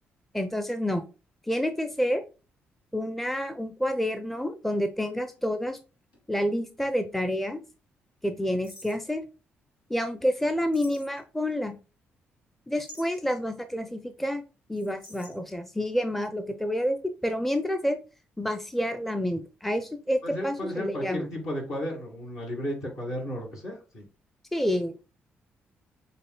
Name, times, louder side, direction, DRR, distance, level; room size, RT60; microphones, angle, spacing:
voice 1, 0.3-1.0 1.5-2.2 2.9-5.8 6.3-7.6 8.2-9.2 9.9-11.7 12.7-14.4 14.7-17.0 17.2-18.0 18.4-21.3 24.5-25.0, equal, 5° left, 8 dB, 0.6 m, -28 dB
sound 1, 4.2-6.7 7.0-7.1 8.6-9.1 10.7-11.5 12.8-13.3 14.7-15.4, left 1 dB, 85° left, 1.9 m, -50 dB
voice 2, 20.2-24.0, equal, 65° left, -2 dB, 2.4 m, -34 dB
6.6 x 3.2 x 2.3 m, 0.33 s
hypercardioid pair, 45°, 5 cm